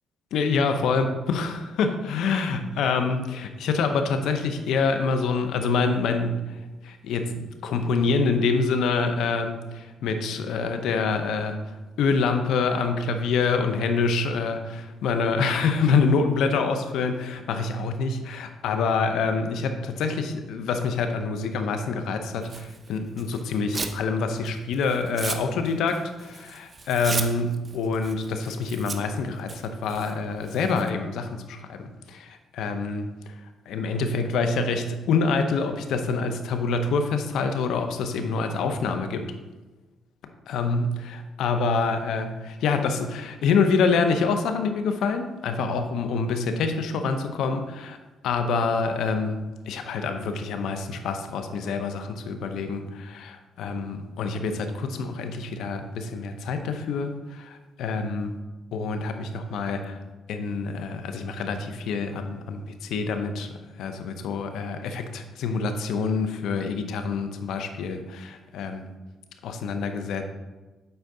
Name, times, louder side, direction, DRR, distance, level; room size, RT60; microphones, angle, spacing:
voice 1, 0.3-6.4 6.8-11.6 12.0-33.1 33.7-39.3 40.5-48.0 48.2-49.4 49.7-58.3 58.7-60.0 60.3-63.5 63.8-68.9 69.4-70.3, left 4 dB, 80° left, 7 dB, 0.7 m, -26 dB
Tearing, 22.4-24.0 24.4-30.9, right 4 dB, 35° right, 0.7 m, -36 dB
8.0 x 4.6 x 3.9 m, 1.2 s
cardioid pair, 90°, 0 cm